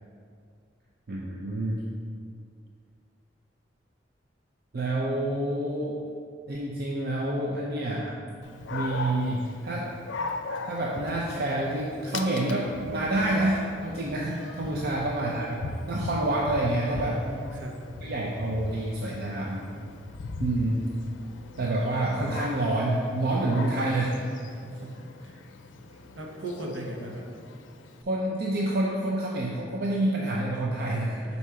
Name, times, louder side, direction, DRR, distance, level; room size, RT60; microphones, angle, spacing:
voice 1, 1.1-1.8 4.7-6.0 6.5-8.2 8.7-9.9 10.6-15.6 15.9-17.2 18.0-19.6 20.4-20.8 21.6-24.2 28.1-31.4, right 1 dB, 55° right, -3 dB, 0.6 m, -28 dB
Dog, 8.4-28.0, left 3 dB, 80° left, 0.5 m, -39 dB
voice 2, 14.6-15.0 17.1-17.8 24.5-25.4 25.9-27.3 31.2-31.4, right 1 dB, 70° right, -1 dB, 1.0 m, -39 dB
5.6 x 4.2 x 4.8 m, 2.2 s
head